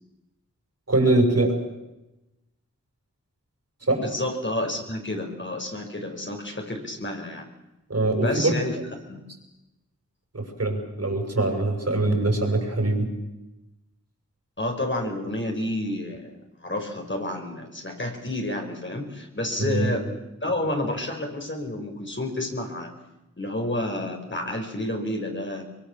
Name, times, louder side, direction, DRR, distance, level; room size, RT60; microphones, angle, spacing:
voice 1, 0.9-1.6 3.9-4.0 7.9-8.5 10.3-13.1 19.6-19.9, right 2 dB, 55° right, 3 dB, 6.7 m, -23 dB
voice 2, 4.0-7.5 8.2-8.8 9.0-9.2 14.6-16.4 16.6-20.1 20.4-22.9 23.4-25.6, left 1 dB, 40° left, 2 dB, 5.3 m, -30 dB
24.0 x 23.0 x 7.4 m, 0.99 s
cardioid pair, 40°, 30 cm